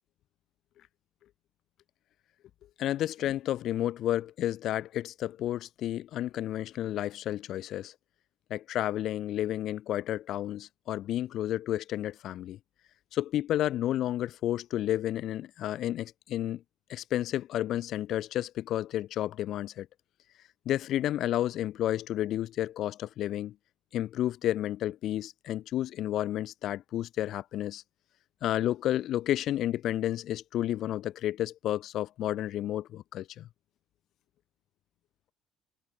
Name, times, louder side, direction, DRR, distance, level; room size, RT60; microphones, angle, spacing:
voice 1, 2.8-7.9 8.5-12.6 13.1-16.6 16.9-19.9 20.6-23.5 23.9-27.8 28.4-33.5, left 12 dB, 65° left, 2.8 m, -31 dB
supercardioid pair, 80°, 0 cm